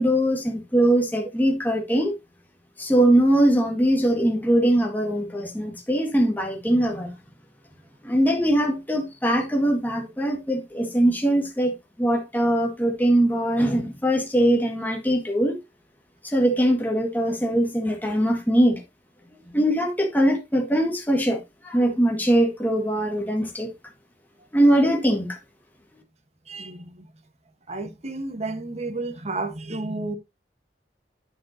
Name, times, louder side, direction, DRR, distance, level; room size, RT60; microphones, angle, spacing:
voice 1, 0.0-2.1 2.8-7.1 8.0-15.6 16.2-18.8 19.5-23.7 24.5-25.4, right 1 dB, 10° left, 1.8 m, -21 dB
voice 2, 26.5-27.1 27.7-30.2, right 2 dB, 40° right, 1.2 m, -31 dB
9.3 x 7.3 x 2.7 m
head